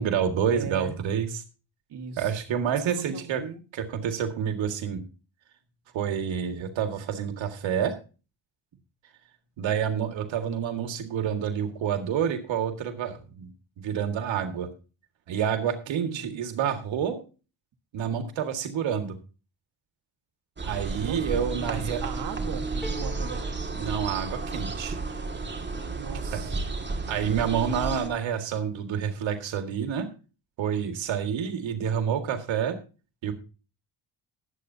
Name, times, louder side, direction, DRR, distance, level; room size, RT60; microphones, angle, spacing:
voice 1, 0.0-1.4 2.2-3.4 3.7-5.0 5.9-8.0 9.6-13.5 13.8-14.7 15.3-17.2 17.9-19.2 20.6-22.0 23.7-25.0 26.3-26.4 27.1-30.1 30.6-32.8 33.2-33.3, right 8 dB, 90° right, 6 dB, 2.0 m, -28 dB
voice 2, 0.5-1.0 1.9-2.3 2.7-3.6 15.9-16.4 21.0-21.2 21.5-23.5 26.0-26.6, right 7 dB, 65° right, 4 dB, 1.9 m, -38 dB
sound 1, 20.6-28.1, right 3 dB, 25° right, 2.1 m, -32 dB
sound 2, 22.8-24.8, left 1 dB, ahead, 0.9 m, -45 dB
20.5 x 8.3 x 2.8 m, 0.33 s
cardioid pair, 125°, 44 cm